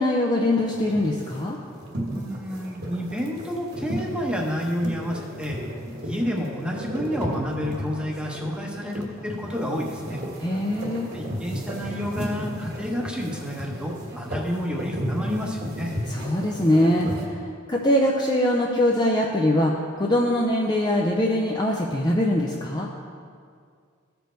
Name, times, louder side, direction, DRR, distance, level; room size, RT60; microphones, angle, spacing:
voice 1, 0.0-1.6 10.4-11.1 16.1-17.4 17.7-22.9, left 1 dB, 20° left, -1 dB, 0.5 m, -22 dB
sound 1, 0.6-17.3, equal, 50° right, 1.5 m, -34 dB
voice 2, 2.1-5.6 6.0-10.2 11.1-16.0, equal, 5° right, -1 dB, 1.0 m, -30 dB
14.5 x 5.3 x 4.4 m, 2.1 s
head